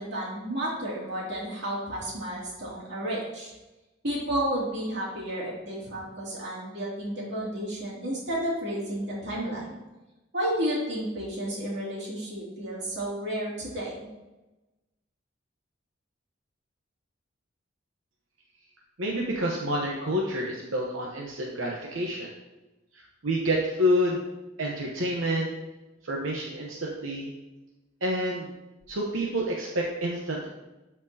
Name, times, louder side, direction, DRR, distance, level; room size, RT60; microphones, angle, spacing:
voice 1, 0.0-3.5 4.0-9.8 10.3-14.0, right 1 dB, 60° right, -5 dB, 2.6 m, -32 dB
voice 2, 19.0-22.3 22.9-24.2 24.6-25.5 26.0-27.3 28.0-28.5 28.9-30.5, equal, 90° right, -2 dB, 1.0 m, -28 dB
12.5 x 4.3 x 2.8 m, 1.0 s
head